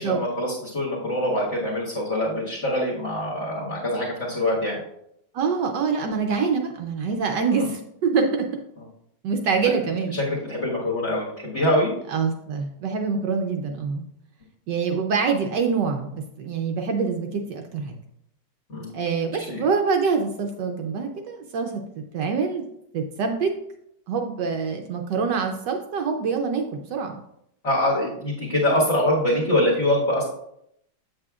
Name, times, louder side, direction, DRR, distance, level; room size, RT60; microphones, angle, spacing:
voice 1, 0.0-4.8 7.5-7.7 9.6-9.7 10.1-11.9 18.7-18.9 19.4-19.7 27.6-30.2, left 1 dB, 35° left, -6 dB, 1.7 m, -24 dB
voice 2, 5.3-8.5 9.2-10.1 12.1-14.0 14.7-17.9 18.9-22.6 22.9-23.5 24.1-27.2, right 5 dB, 70° right, 4 dB, 1.1 m, -25 dB
7.7 x 7.6 x 2.4 m, 0.76 s
omnidirectional pair, 2.3 m